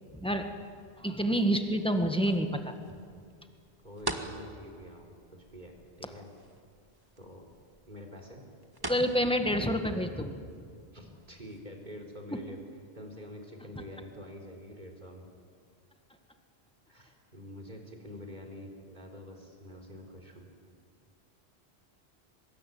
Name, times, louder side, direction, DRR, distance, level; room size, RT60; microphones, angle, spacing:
voice 1, 0.1-0.4 1.0-2.7 8.9-10.4 12.3-12.4, equal, 5° left, 5 dB, 1.7 m, -28 dB
sound 1, 0.6-13.3, right 1 dB, 20° right, 1.8 m, -46 dB
voice 2, 3.8-6.3 7.2-7.5 7.9-8.5 10.9-12.6 12.9-15.3 16.9-20.5, equal, 45° right, 1 dB, 4.1 m, -47 dB
24.5 x 21.0 x 9.4 m, 2.3 s
omnidirectional pair, 1.1 m